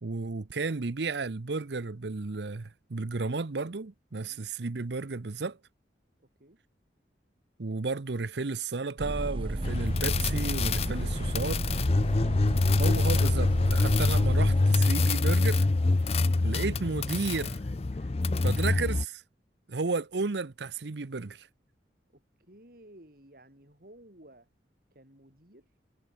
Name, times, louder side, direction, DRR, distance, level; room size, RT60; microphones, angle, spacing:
voice 1, 0.0-5.6 7.6-11.6 12.8-15.7 16.4-17.6 18.4-19.2 19.7-21.5, right 3 dB, 70° right, 0.8 m, -33 dB
voice 2, 6.2-6.6 22.1-24.5 24.9-25.8, right 1 dB, 55° right, 5.6 m, -56 dB
sound 1, 9.0-14.6, right 1 dB, 30° right, 0.7 m, -33 dB
sound 2, 9.6-19.0, left 3 dB, 35° left, 0.5 m, -25 dB
head